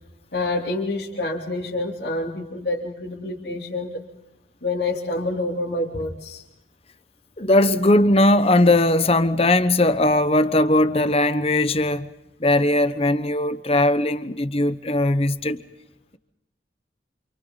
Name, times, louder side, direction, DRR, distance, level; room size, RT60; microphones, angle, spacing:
voice 1, 0.3-4.0 4.6-6.4, left 2 dB, 60° left, 3.0 m, -27 dB
voice 2, 7.4-12.1 12.4-15.6, left 1 dB, 35° left, 1.1 m, -19 dB
28.5 x 28.0 x 4.1 m
head